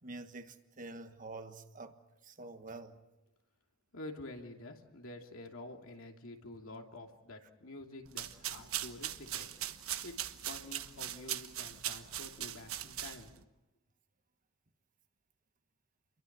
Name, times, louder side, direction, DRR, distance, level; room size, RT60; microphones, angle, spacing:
voice 1, 0.0-2.0 2.2-3.0, right 2 dB, 40° right, 1.5 m, -47 dB
voice 2, 3.9-9.5 10.0-13.4, left 2 dB, 70° left, 2.8 m, -48 dB
sound 1, 8.1-13.4, right 12 dB, 85° right, 1.2 m, -40 dB
29.5 x 23.0 x 6.1 m
head